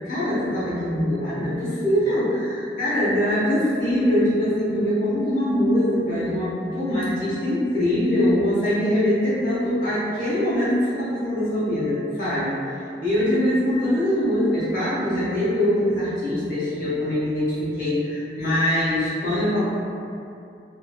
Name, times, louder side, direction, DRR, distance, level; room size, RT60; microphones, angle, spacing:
voice 1, 0.0-12.6 13.0-19.6, left 1 dB, 45° left, -11 dB, 1.0 m, -23 dB
2.8 x 2.8 x 2.3 m, 2.5 s
head